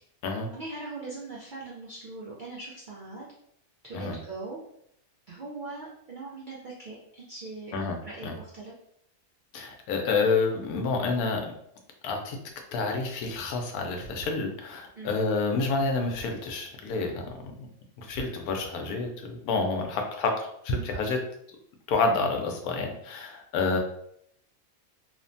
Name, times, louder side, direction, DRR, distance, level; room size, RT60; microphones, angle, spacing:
voice 1, 0.5-3.3 3.8-4.6 5.3-7.8 8.0-8.7 15.0-15.2 23.7-23.8, right 3 dB, 90° right, -4 dB, 0.4 m, -40 dB
voice 2, 9.5-11.5 12.0-12.4 12.7-17.7 18.0-21.2 21.9-23.8, left 3 dB, 85° left, 3 dB, 1.1 m, -28 dB
3.1 x 2.1 x 2.6 m, 0.70 s
omnidirectional pair, 1.5 m